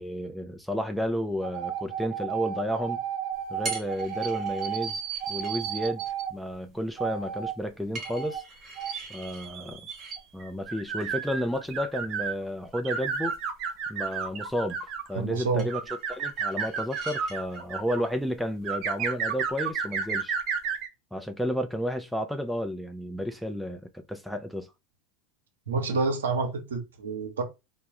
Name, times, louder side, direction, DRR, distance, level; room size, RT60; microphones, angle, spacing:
voice 1, 0.0-3.0 3.5-5.0 5.3-6.0 6.3-8.4 9.1-9.9 10.3-13.4 13.9-14.8 15.1-15.8 16.1-20.3 21.1-24.7, equal, ahead, 0.4 m, -32 dB
sound 1, 1.3-6.3 7.0-7.5 8.0-8.4 8.8-12.3 12.7-15.1 15.7-18.0 18.6-20.9, right 7 dB, 50° right, 0.5 m, -32 dB
sound 2, 3.3-20.8, right 3 dB, 35° right, 1.1 m, -46 dB
voice 2, 15.1-15.7 25.7-27.4, right 4 dB, 85° right, 0.7 m, -28 dB
2.3 x 2.0 x 2.8 m
hypercardioid pair, 90°, 0 cm